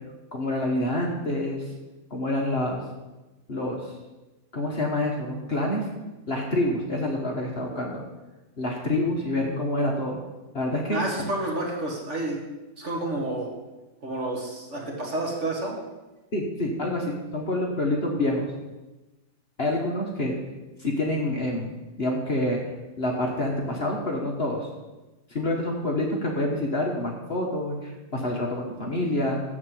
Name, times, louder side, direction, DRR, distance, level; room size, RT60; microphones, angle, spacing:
voice 1, 0.3-1.6 2.1-2.8 3.5-3.9 4.5-5.9 6.3-8.0 8.6-10.2 10.5-11.0 16.3-18.5 19.6-20.4 20.8-21.7 22.0-22.6 23.0-24.7 25.3-29.4, left 1 dB, 40° left, -1 dB, 1.3 m, -27 dB
voice 2, 10.9-12.4 12.8-13.5 14.0-15.8, right 1 dB, 45° right, -1 dB, 2.1 m, -29 dB
12.5 x 4.4 x 7.8 m, 1.1 s
omnidirectional pair, 1.8 m